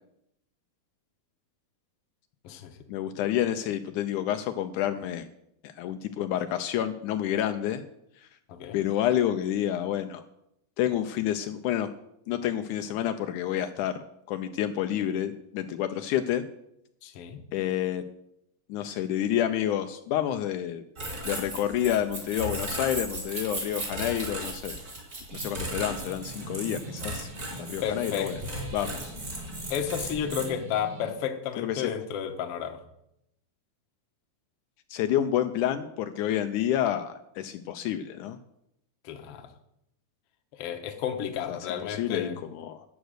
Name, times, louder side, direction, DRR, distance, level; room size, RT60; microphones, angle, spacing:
voice 1, 2.9-5.3 5.8-7.8 8.7-10.2 10.8-11.9 12.3-14.0 14.3-16.4 17.5-18.0 18.7-20.8 21.2-24.8 25.3-27.3 27.7-28.4 28.7-29.1 31.6-31.9 34.9-38.4 41.5-41.6 41.9-42.8, left 11 dB, 90° left, 8 dB, 1.8 m, -29 dB
voice 2, 8.5-8.8 17.0-17.4 27.8-28.3 29.7-32.8 39.0-39.5 40.5-42.3, left 8 dB, 65° left, 6 dB, 1.5 m, -32 dB
sound 1, 21.0-30.4, right 1 dB, 25° right, 4.2 m, -36 dB
sound 2, 25.3-31.1, right 2 dB, 45° right, 1.8 m, -43 dB
13.0 x 9.1 x 6.5 m, 0.79 s
omnidirectional pair, 4.2 m